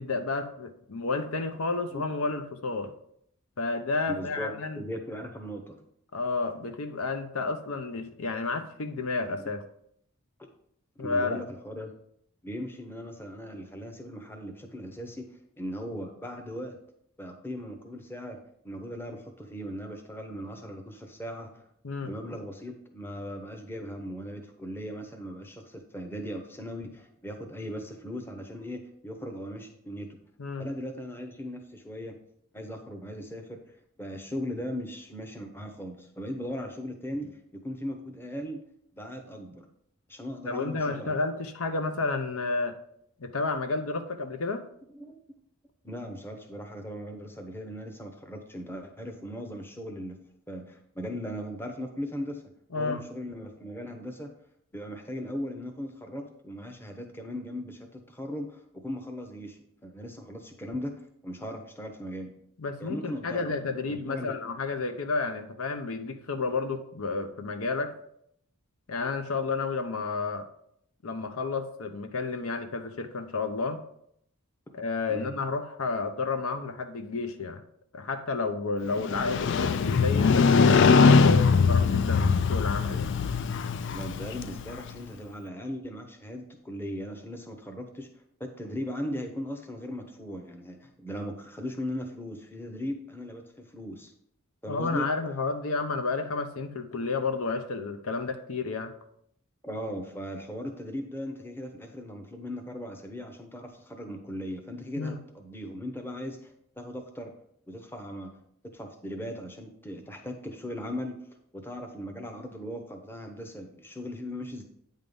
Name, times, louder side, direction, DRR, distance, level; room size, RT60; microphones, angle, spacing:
voice 1, 0.0-2.9 3.6-4.8 6.1-9.7 11.0-11.4 21.8-22.1 30.4-30.6 40.5-42.8 43.2-44.6 52.7-53.0 62.6-68.0 68.9-70.5 71.0-73.8 74.7-77.6 77.9-83.1 94.7-98.9 105.0-105.2, left 3 dB, 75° left, 8 dB, 0.7 m, -31 dB
voice 2, 4.1-4.5 4.8-5.8 11.0-11.9 12.4-15.3 15.6-16.8 17.2-18.4 18.6-21.6 22.0-30.2 30.6-32.2 32.5-33.6 34.0-38.6 38.9-39.7 40.1-41.1 44.9-45.2 45.8-50.2 50.5-52.4 52.7-54.3 54.7-62.3 62.8-64.4 75.1-75.3 83.9-88.1 88.4-94.1 94.6-95.1 99.6-107.3 107.7-108.4 108.7-111.1 111.5-114.6, equal, 10° left, 3 dB, 0.8 m, -38 dB
Motorcycle, 79.0-84.9, left 5 dB, 55° left, 0.3 m, -22 dB
8.9 x 3.7 x 5.3 m, 0.70 s
head